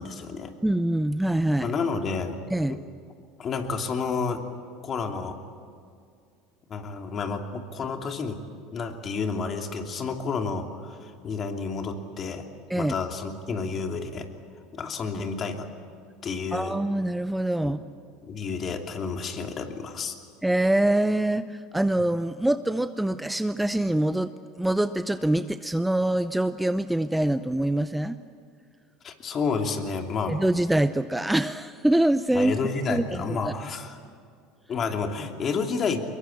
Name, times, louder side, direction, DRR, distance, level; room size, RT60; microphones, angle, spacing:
voice 1, 0.0-0.5 1.6-2.4 2.7-2.8 3.4-4.4 4.8-5.4 6.7-8.4 8.7-12.5 12.7-14.3 14.7-15.7 16.2-16.8 17.6-17.7 18.2-20.1 29.0-30.4 32.3-33.9 34.7-36.0, left 5 dB, 40° left, 4 dB, 2.8 m, -30 dB
voice 2, 0.6-1.7 2.5-2.8 12.7-12.9 16.5-17.8 20.4-28.2 30.3-32.6 32.9-33.4, right 1 dB, 5° right, 12 dB, 0.7 m, -24 dB
24.0 x 22.0 x 8.7 m, 2.2 s
hypercardioid pair, 85°, 0 cm